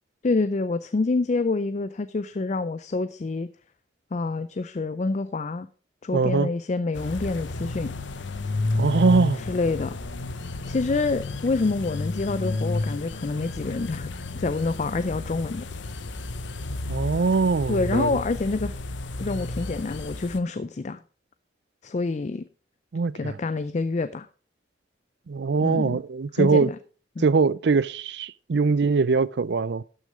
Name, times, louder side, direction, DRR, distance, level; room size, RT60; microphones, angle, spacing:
voice 1, 0.2-3.5 4.1-5.7 6.0-7.9 9.4-10.0 10.7-15.7 17.7-18.7 19.2-21.0 21.8-22.4 23.1-24.3 25.6-26.0 26.3-26.8 27.2-27.3, left 3 dB, 40° left, 0.4 m, -27 dB
voice 2, 6.1-6.5 8.7-9.4 16.9-18.2 22.9-23.4 25.3-26.7 27.2-29.8, right 4 dB, 65° right, 0.5 m, -22 dB
sound 1, 6.9-20.4, left 2 dB, 85° left, 0.9 m, -31 dB
12.0 x 6.5 x 4.9 m
head